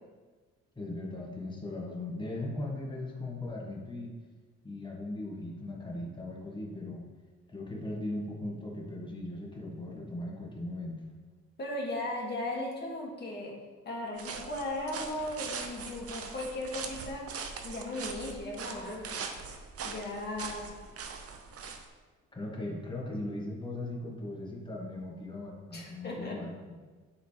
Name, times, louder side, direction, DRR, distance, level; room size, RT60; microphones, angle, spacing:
voice 1, 0.7-4.1 4.6-7.0 7.5-11.0 22.3-26.7, left 2 dB, 15° left, -2 dB, 1.7 m, -38 dB
voice 2, 11.6-13.6 13.8-17.3 17.6-19.2 19.8-20.7 25.7-26.4, left 1 dB, 35° left, -3 dB, 2.2 m, -37 dB
sound 1, 14.2-21.9, right 5 dB, 50° right, 0.8 m, -41 dB
10.5 x 4.1 x 3.4 m, 1.4 s
cardioid pair, 90°, 30 cm